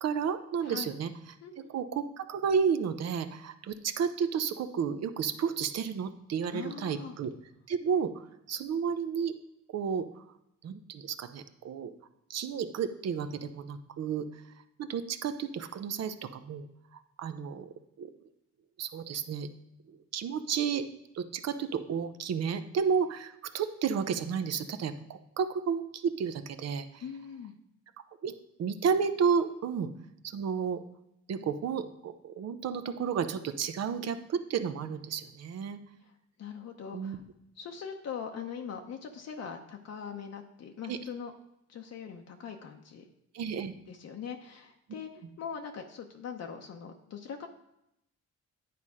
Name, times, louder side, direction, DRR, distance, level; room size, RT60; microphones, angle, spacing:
voice 1, 0.0-7.3 7.7-9.3 9.7-10.2 10.6-11.9 12.3-14.4 14.8-16.7 16.9-17.7 18.0-18.1 18.8-19.5 20.1-20.8 21.1-27.0 28.2-28.3 28.6-29.9 30.2-30.8 31.3-35.8 36.9-37.2 40.9-41.0 43.3-43.7, right 6 dB, 60° right, 10 dB, 0.7 m, -32 dB
voice 2, 1.4-1.7 6.5-7.1 27.0-27.6 36.0-36.1 36.4-37.2 37.6-41.3 41.7-43.0 43.9-47.5, left 7 dB, 55° left, 3 dB, 0.8 m, -41 dB
9.5 x 4.1 x 4.9 m, 0.83 s
cardioid pair, 90°, 30 cm